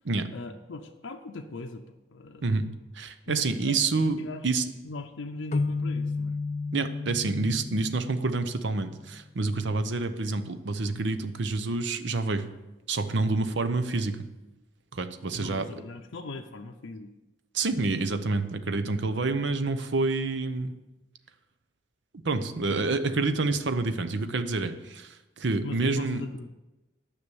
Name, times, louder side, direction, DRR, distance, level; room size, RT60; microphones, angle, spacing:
voice 1, 0.3-2.6 3.3-3.8 4.2-4.5 4.8-6.3 15.4-17.1 25.6-26.5, left 3 dB, 80° left, 3 dB, 0.6 m, -39 dB
voice 2, 2.9-4.6 6.7-12.5 12.9-14.2 14.9-15.7 17.5-20.7 22.2-26.2, right 3 dB, 70° right, 10 dB, 0.7 m, -28 dB
sound 1, 5.5-9.0, left 3 dB, 35° left, 0.4 m, -32 dB
9.7 x 6.0 x 7.0 m, 1.0 s
head